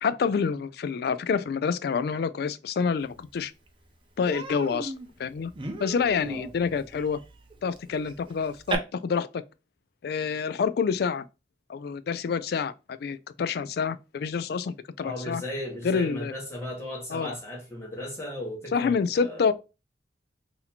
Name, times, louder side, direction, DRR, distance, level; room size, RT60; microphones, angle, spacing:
voice 1, 0.0-3.5 4.2-4.9 5.2-5.5 5.8-7.2 7.6-9.4 10.0-11.2 11.7-15.4 15.8-16.3 17.1-17.3 18.7-19.5, left 5 dB, 60° left, 0.3 m, -27 dB
Human voice, 3.3-3.4 3.7-3.9 4.3-8.8, right 3 dB, 30° right, 0.5 m, -37 dB
voice 2, 15.0-19.5, left 1 dB, 15° left, 1.5 m, -36 dB
4.0 x 2.8 x 2.8 m
head